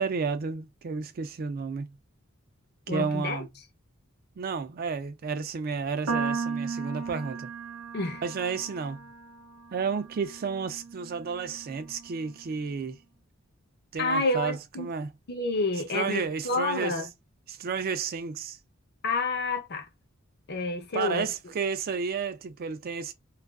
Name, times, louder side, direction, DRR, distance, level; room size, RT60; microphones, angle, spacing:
voice 1, 0.0-2.0 2.9-3.5 4.4-7.5 8.2-9.0 9.7-13.0 13.9-15.1 15.9-16.9 17.5-18.6 20.9-23.1, right 5 dB, 45° right, 0.4 m, -31 dB
voice 2, 2.9-3.4 7.9-8.2 14.0-14.9 15.3-17.1 19.0-19.9 20.5-21.3, left 2 dB, 50° left, 0.6 m, -29 dB
sound 1, 6.1-12.4, right 5 dB, 85° right, 0.6 m, -36 dB
2.4 x 2.3 x 2.2 m
head